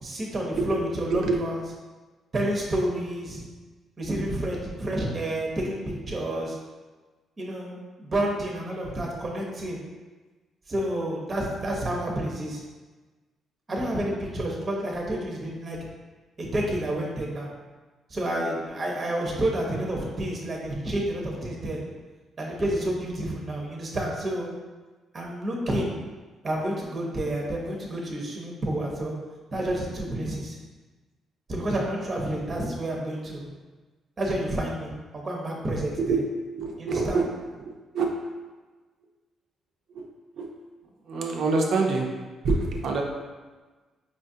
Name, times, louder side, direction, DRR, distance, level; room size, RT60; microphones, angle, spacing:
voice 1, 0.0-1.6 2.3-3.4 4.0-5.8 6.1-6.6 7.4-9.8 10.7-12.6 13.7-15.8 16.4-17.5 18.1-21.8 22.4-24.5 25.1-25.9 26.4-29.1 29.5-30.5 31.5-33.5 34.2-36.2 36.8-37.2, right 1 dB, 35° right, -2 dB, 0.8 m, -29 dB
voice 2, 36.6-37.2 37.9-38.1 40.0-40.1 40.4-40.5 41.1-42.1 42.4-43.0, right 4 dB, 70° right, 1 dB, 0.6 m, -25 dB
5.0 x 2.4 x 2.7 m, 1.3 s
cardioid pair, 90°, 0 cm